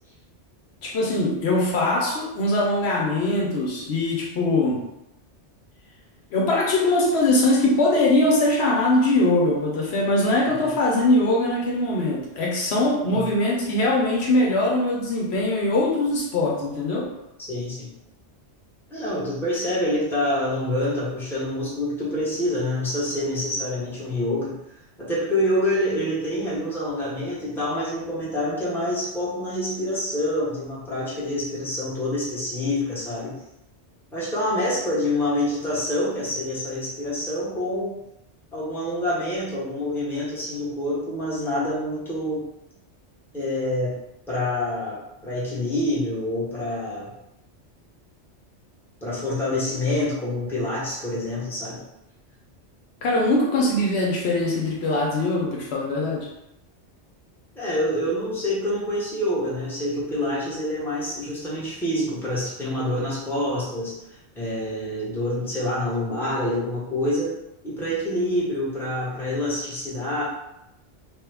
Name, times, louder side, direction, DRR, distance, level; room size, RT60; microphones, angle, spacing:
voice 1, 0.8-4.8 6.3-17.1 53.0-56.3, left 2 dB, 70° left, -2 dB, 0.9 m, -22 dB
voice 2, 17.4-17.9 18.9-24.6 25.0-33.3 34.1-38.0 38.5-42.5 43.3-44.0 44.3-47.1 49.0-51.8 57.6-64.0 64.3-67.4 67.6-70.2, left 1 dB, ahead, -8 dB, 0.9 m, -26 dB
3.0 x 2.2 x 3.4 m, 0.86 s
omnidirectional pair, 1.2 m